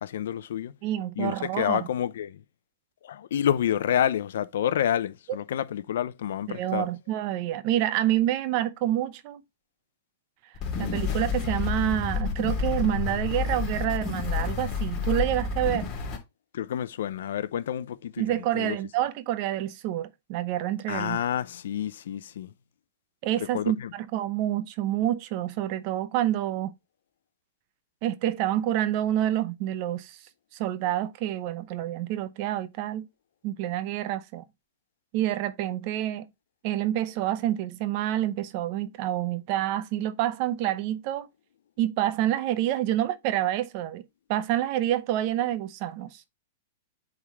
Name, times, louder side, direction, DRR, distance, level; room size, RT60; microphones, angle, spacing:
voice 1, 0.0-0.7 1.2-2.4 3.0-6.9 16.5-18.8 20.9-22.5 23.5-23.9, left 10 dB, 75° left, 0.6 m, -29 dB
voice 2, 0.8-1.9 6.5-9.4 10.8-15.9 18.2-21.2 23.2-26.7 28.0-30.2 30.5-33.1 33.4-34.4 35.1-36.3 36.6-41.3 41.8-44.0 44.3-46.3, right 12 dB, 45° right, 0.7 m, -28 dB
sound 1, 10.5-16.2, left 6 dB, 30° left, 2.7 m, -29 dB
8.2 x 3.6 x 3.1 m
supercardioid pair, 150°, 0 cm